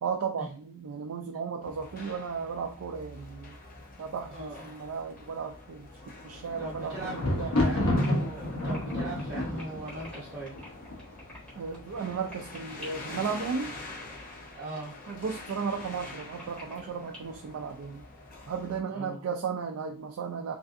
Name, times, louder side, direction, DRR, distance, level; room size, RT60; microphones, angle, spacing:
voice 1, 0.0-3.5 4.0-7.5 11.6-13.8 15.1-18.0 18.5-20.5, right 6 dB, 70° right, 3 dB, 0.3 m, -35 dB
sound 1, 1.6-18.8, left 2 dB, 40° left, 0.6 m, -46 dB
voice 2, 4.2-4.6 6.6-10.6 14.5-14.9 18.9-19.3, right 2 dB, 45° right, -5 dB, 0.8 m, -40 dB
Thunder, 6.2-11.3 12.1-12.6 12.8-12.9, left 1 dB, 80° left, 0.8 m, -30 dB
sound 2, 7.6-17.2, equal, 5° left, 1.2 m, -49 dB
3.2 x 2.5 x 2.5 m, 0.41 s
head